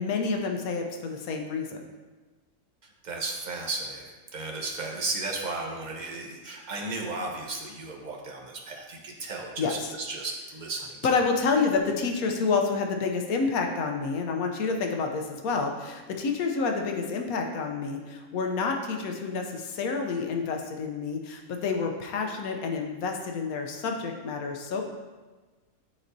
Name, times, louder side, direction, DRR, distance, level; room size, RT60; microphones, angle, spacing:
voice 1, 0.0-1.8 9.6-9.9 11.0-24.8, left 4 dB, 85° left, 3 dB, 1.1 m, -28 dB
voice 2, 3.0-11.0, right 3 dB, 40° right, 0 dB, 0.8 m, -34 dB
9.1 x 4.2 x 2.6 m, 1.3 s
omnidirectional pair, 1.5 m